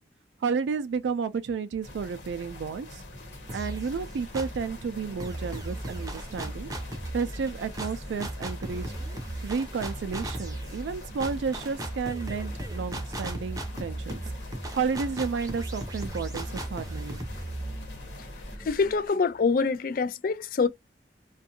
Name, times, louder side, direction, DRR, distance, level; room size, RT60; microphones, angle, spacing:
voice 1, 0.4-3.0 3.5-6.7 7.1-8.9 9.4-14.2 14.8-17.3, right 5 dB, 80° right, 0.3 m, -32 dB
sound 1, 1.8-18.6, left 1 dB, 75° left, 1.0 m, -45 dB
Engine, 3.1-19.1, right 1 dB, 15° left, 0.7 m, -49 dB
sound 2, 3.5-4.7 5.2-18.9, right 1 dB, 20° right, 0.6 m, -37 dB
voice 2, 18.6-20.7, left 4 dB, 50° left, 0.3 m, -25 dB
2.5 x 2.3 x 2.7 m
head